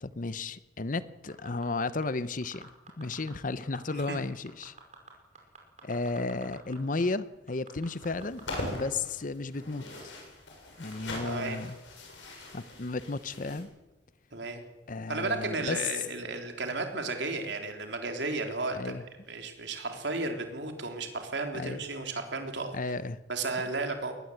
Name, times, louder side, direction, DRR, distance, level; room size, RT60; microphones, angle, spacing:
voice 1, 0.0-2.7 3.0-4.7 5.8-9.9 10.8-11.8 12.5-13.7 14.9-15.8 18.7-19.0 21.5-21.8 22.7-23.2, left 3 dB, 45° left, 15 dB, 0.8 m, -33 dB
sound 1, 1.3-2.1 2.4-3.3 3.6-4.2 4.5-6.8 7.0-7.1 7.5-8.6 9.0-9.1, right 5 dB, 40° right, 5.4 m, -49 dB
sound 2, 7.9-13.6, left 1 dB, 90° left, 7.5 m, -41 dB
voice 2, 11.2-11.6 14.3-14.6 15.1-18.9 19.3-22.7 23.3-24.1, right 3 dB, 70° right, 4 dB, 3.6 m, -33 dB
22.0 x 19.0 x 8.0 m, 1.1 s
head